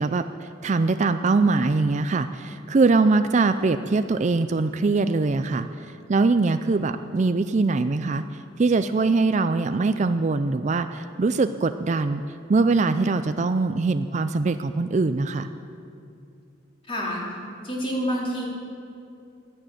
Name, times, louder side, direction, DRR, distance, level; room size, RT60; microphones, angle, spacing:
voice 1, 0.0-5.7 6.1-8.2 8.6-12.2 12.5-15.5, right 3 dB, 40° right, 10 dB, 0.4 m, -22 dB
voice 2, 16.9-17.2 17.6-18.4, equal, 30° left, -4 dB, 3.5 m, -27 dB
13.0 x 10.5 x 9.1 m, 2.5 s
head